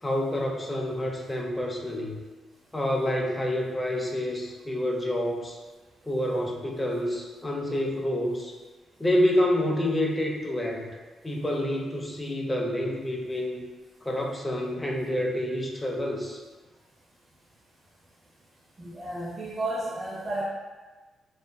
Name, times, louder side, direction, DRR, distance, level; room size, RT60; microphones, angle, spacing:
voice 1, 0.0-2.2 2.7-5.6 6.0-8.5 9.0-10.9 11.2-13.6 14.0-16.4, left 1 dB, 20° left, 0 dB, 0.5 m, -28 dB
voice 2, 18.8-20.4, right 1 dB, 40° right, -5 dB, 0.5 m, -32 dB
2.4 x 2.4 x 2.2 m, 1.3 s
supercardioid pair, 50°, 0 cm